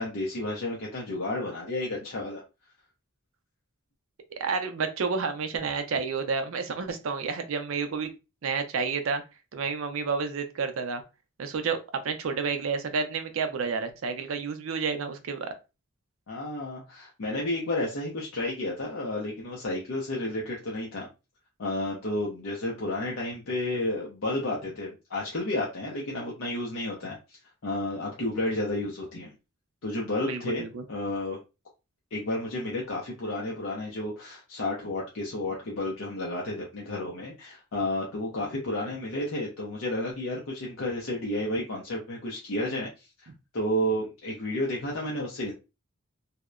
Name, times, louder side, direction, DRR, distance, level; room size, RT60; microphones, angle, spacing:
voice 1, 0.0-2.4 16.3-21.1 21.6-29.3 29.8-31.4 32.1-43.1 43.5-45.5, left 1 dB, 65° left, -3 dB, 0.6 m, -31 dB
voice 2, 4.3-8.1 8.4-9.2 9.5-11.0 11.4-15.5 30.2-30.8, right 5 dB, 65° right, 8 dB, 0.4 m, -30 dB
2.8 x 2.0 x 2.3 m, 0.28 s
head